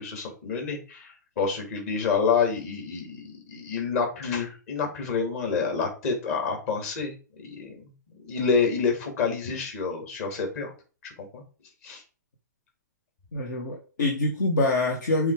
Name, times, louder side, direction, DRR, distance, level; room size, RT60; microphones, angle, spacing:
voice 1, 0.0-7.9 8.2-10.7 11.0-11.4 11.8-12.0, left 5 dB, 50° left, 2 dB, 3.1 m, -28 dB
voice 2, 13.3-15.3, left 2 dB, 70° left, 0 dB, 1.7 m, -25 dB
7.1 x 3.7 x 5.1 m, 0.35 s
hypercardioid pair, 120°, 10 cm